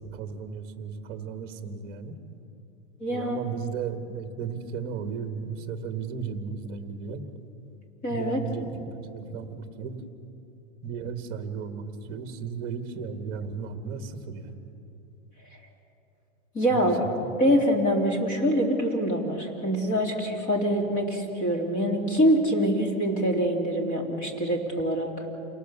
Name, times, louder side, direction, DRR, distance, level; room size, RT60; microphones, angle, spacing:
voice 1, 0.1-2.2 3.1-7.2 8.1-10.0 10.8-14.5 16.7-16.9 17.2-17.5, right 6 dB, 25° right, 6 dB, 1.7 m, -35 dB
voice 2, 3.0-3.4 8.0-8.4 16.5-17.0 17.4-25.3, equal, 20° left, 0 dB, 3.1 m, -25 dB
28.5 x 18.5 x 7.1 m, 2.8 s
supercardioid pair, 170°, 39 cm